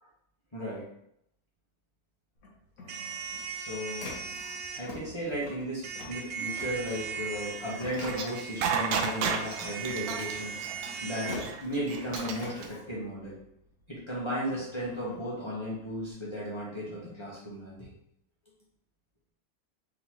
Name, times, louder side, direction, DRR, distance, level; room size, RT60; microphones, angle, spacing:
voice 1, 0.5-0.8 3.6-4.1 4.7-10.6 11.0-13.4 13.9-17.9, equal, 20° left, -7 dB, 1.1 m, -35 dB
Printer, 2.4-13.8 14.3-16.1, left 2 dB, 70° left, 1.3 m, -46 dB
sound 1, 2.9-4.8 5.8-11.4, right 6 dB, 65° right, 0.8 m, -39 dB
sound 2, 7.9-12.7, right 7 dB, 90° right, 1.1 m, -31 dB
3.9 x 3.6 x 3.0 m, 0.75 s
omnidirectional pair, 1.6 m